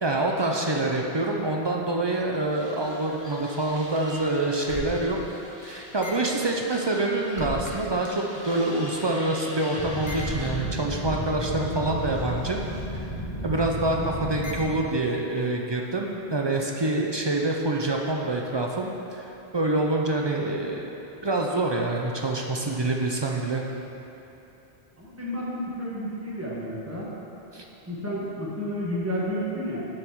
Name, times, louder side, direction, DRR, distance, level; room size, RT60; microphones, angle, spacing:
voice 1, 0.0-5.2 5.6-12.6 12.9-13.1 13.4-19.2 19.5-20.9 21.2-23.6 27.5-27.6, right 2 dB, 40° right, 0 dB, 0.4 m, -26 dB
sound 1, 2.5-7.8 8.0-14.8, equal, 20° left, 1.2 m, -35 dB
voice 2, 13.8-14.1 25.0-27.1 27.9-29.9, equal, 15° right, -6 dB, 1.2 m, -31 dB
7.8 x 5.6 x 4.5 m, 2.9 s
omnidirectional pair, 1.1 m